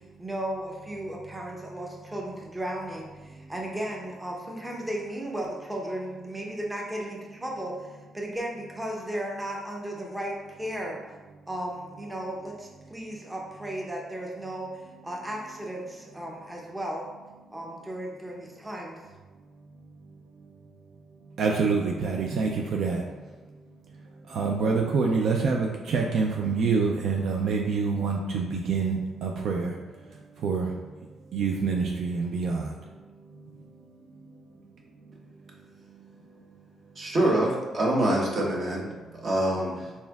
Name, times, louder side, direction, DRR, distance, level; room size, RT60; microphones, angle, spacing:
voice 1, 0.2-11.0 11.5-14.7 15.0-17.1 17.5-19.0, right 1 dB, 15° right, -2 dB, 0.6 m, -35 dB
voice 2, 21.4-23.0 24.3-29.7 30.4-30.7 31.3-32.7, right 4 dB, 70° right, 0 dB, 0.4 m, -26 dB
voice 3, 37.0-38.9 39.1-39.9, right 1 dB, 45° right, -2 dB, 1.0 m, -25 dB
4.2 x 3.5 x 2.3 m, 1.3 s
cardioid pair, 90°, 0 cm